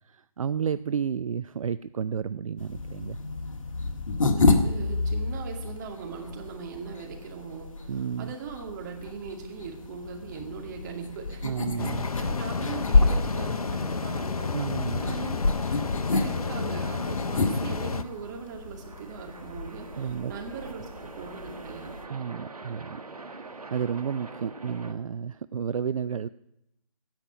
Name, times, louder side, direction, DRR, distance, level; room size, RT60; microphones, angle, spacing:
voice 1, 0.0-3.2 7.9-8.3 11.4-12.1 14.5-15.2 19.9-20.3 22.1-23.0 23.3-26.3, right 7 dB, 65° right, 15 dB, 0.4 m, -31 dB
sound 1, 2.6-22.0, left 3 dB, 60° left, 1.7 m, -30 dB
voice 2, 4.3-7.9 8.2-14.6 15.0-15.4 15.7-22.0, right 6 dB, 30° right, 2 dB, 2.4 m, -40 dB
sound 2, 6.1-24.9, right 3 dB, 85° right, 1.6 m, -48 dB
sound 3, 11.8-18.0, left 4 dB, 75° left, 0.8 m, -31 dB
16.0 x 5.9 x 8.7 m, 0.83 s
figure-of-eight pair, 145°, 19 cm